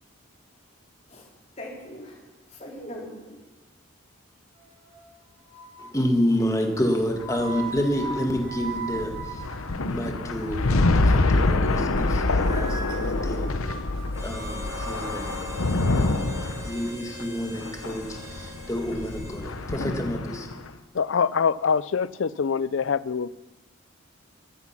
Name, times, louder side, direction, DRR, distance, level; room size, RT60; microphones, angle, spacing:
voice 1, 1.6-3.4, equal, 30° left, 3.8 m, -41 dB
sound 1, 4.5-5.1 5.5-6.0 6.8-10.1 10.4-10.7 11.1-11.4 11.7-11.8 12.0-12.1 12.4-15.4, right 4 dB, 65° right, 7.2 m, -39 dB
voice 2, 5.8-9.5 9.9-13.5 14.2-15.5 15.9-20.5, equal, 15° left, 1.8 m, -29 dB
sound 2, 7.1-20.7, left 2 dB, 85° left, 0.9 m, -26 dB
Harmonica, 14.1-19.8, right 1 dB, 15° right, 2.6 m, -43 dB
voice 3, 20.9-23.3, left 6 dB, 65° left, 0.5 m, -24 dB
14.5 x 14.5 x 5.9 m
head